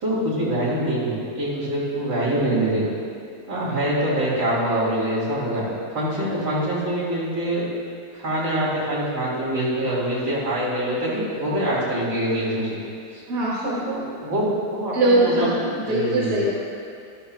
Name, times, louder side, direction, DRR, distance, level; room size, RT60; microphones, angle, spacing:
voice 1, 0.0-2.9 3.5-5.7 5.9-7.7 8.1-12.8 13.1-13.2 13.9-15.5 15.9-16.4, right 1 dB, 90° right, -8 dB, 3.7 m, -24 dB
voice 2, 2.5-2.9 13.3-14.0 14.9-16.5, right 1 dB, 60° right, -7 dB, 2.2 m, -22 dB
13.5 x 12.0 x 2.5 m, 2.5 s
omnidirectional pair, 1.7 m